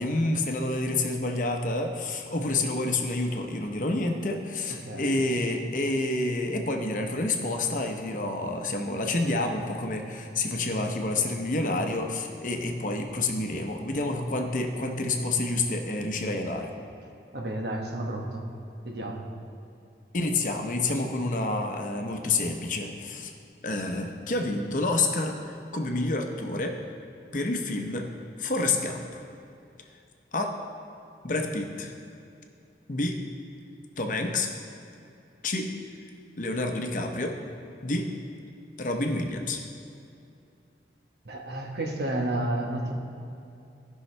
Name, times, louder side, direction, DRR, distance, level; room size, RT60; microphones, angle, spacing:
voice 1, 0.0-16.7 20.1-23.3 23.6-26.8 27.3-28.1 28.4-29.2 30.3-30.5 31.2-31.9 32.9-33.2 34.0-34.5 35.4-35.7 36.4-37.3 37.8-38.1 38.8-39.6, left 2 dB, 45° left, 3 dB, 0.8 m, -28 dB
voice 2, 4.7-5.2 17.3-18.5 18.8-19.3 41.2-42.9, right 1 dB, 70° right, 1 dB, 1.1 m, -31 dB
16.0 x 5.7 x 3.3 m, 2.6 s
head